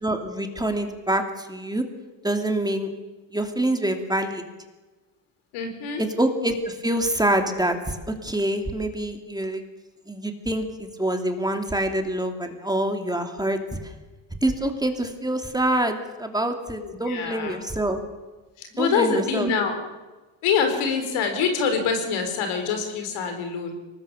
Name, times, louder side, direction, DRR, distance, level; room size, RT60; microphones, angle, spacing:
voice 1, 0.0-1.8 2.2-2.9 3.3-4.4 6.0-9.6 10.1-13.9 14.4-18.0 18.8-19.5, right 1 dB, 10° right, 5 dB, 2.7 m, -26 dB
voice 2, 5.5-6.0 16.8-17.6 18.6-19.8 20.4-23.8, left 6 dB, 90° left, 6 dB, 4.6 m, -25 dB
23.5 x 19.0 x 7.1 m, 1.2 s
cardioid pair, 105°, 47 cm